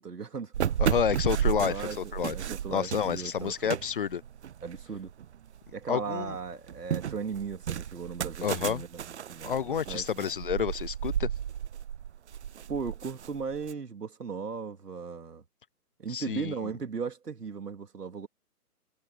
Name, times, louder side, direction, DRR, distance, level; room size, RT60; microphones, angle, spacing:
voice 1, 0.0-0.8 1.6-3.8 4.6-5.1 5.7-10.3 12.7-15.4 16.0-18.3, right 5 dB, 85° right, 3.1 m, -37 dB
sound 1, 0.5-5.7 6.1-13.7, right 9 dB, 50° right, 0.7 m, -33 dB
voice 2, 0.8-2.3 2.7-4.2 5.9-6.4 8.4-8.8 9.4-11.3 16.1-16.5, left 8 dB, 35° left, 0.7 m, -29 dB
hypercardioid pair, 145°, 46 cm